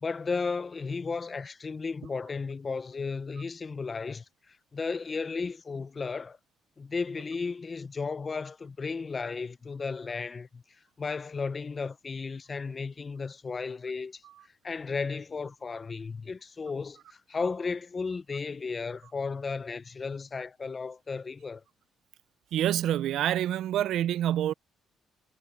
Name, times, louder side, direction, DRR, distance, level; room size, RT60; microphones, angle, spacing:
voice 1, 0.0-6.4 6.8-10.6 11.0-14.2 14.6-21.6, left 4 dB, 35° left, 0.6 m, -34 dB
voice 2, 22.5-24.5, right 11 dB, 75° right, 0.3 m, -27 dB
cardioid pair, 90°, 0 cm